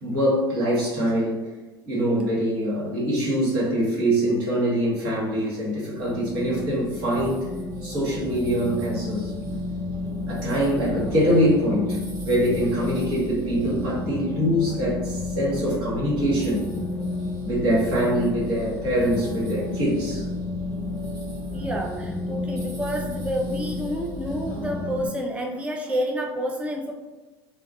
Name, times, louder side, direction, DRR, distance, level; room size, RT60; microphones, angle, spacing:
voice 1, 0.0-1.4 1.8-7.5 7.8-9.3 10.3-16.7 17.4-20.3, equal, 75° right, -7 dB, 1.3 m, -24 dB
sound 1, 6.0-25.1, left 2 dB, 30° right, 0.9 m, -32 dB
sound 2, 14.1-20.3, left 3 dB, 55° left, 0.5 m, -43 dB
voice 2, 21.5-26.9, equal, 10° right, 0 dB, 0.4 m, -29 dB
2.4 x 2.3 x 2.3 m, 1.2 s
hypercardioid pair, 80°, 12 cm